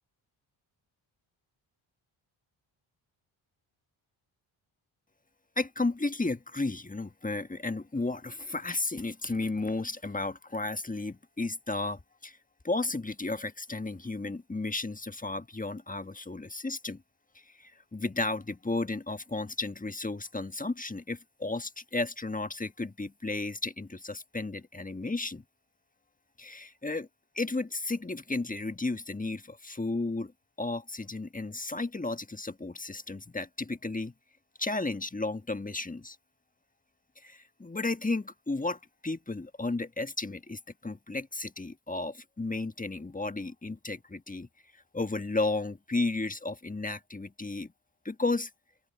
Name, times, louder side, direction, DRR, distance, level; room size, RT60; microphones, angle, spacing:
voice 1, 5.6-12.4 12.6-17.0 17.6-25.4 26.4-27.1 27.3-30.3 30.6-34.1 34.6-36.2 37.2-44.5 44.9-47.7 48.0-48.5, left 2 dB, 15° left, 1.5 m, -33 dB
open air
supercardioid pair, 50°, 50 cm